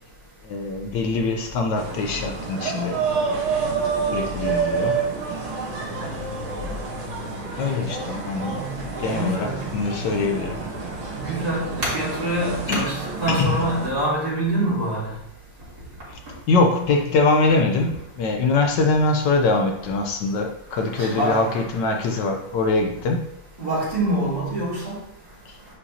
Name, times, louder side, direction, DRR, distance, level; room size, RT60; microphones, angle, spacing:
voice 1, 0.4-3.1 4.1-5.0 7.1-10.6 12.7-12.9 13.3-13.6 16.1-16.2 16.5-23.3 25.5-25.6, left 3 dB, 70° left, 3 dB, 1.3 m, -23 dB
sound 1, 1.8-13.9, right 5 dB, 90° right, 2.0 m, -29 dB
voice 2, 9.1-9.6 11.1-15.1 20.9-22.0 23.6-25.0, right 1 dB, 50° right, -8 dB, 3.7 m, -25 dB
9.7 x 5.5 x 2.8 m, 0.82 s
omnidirectional pair, 2.2 m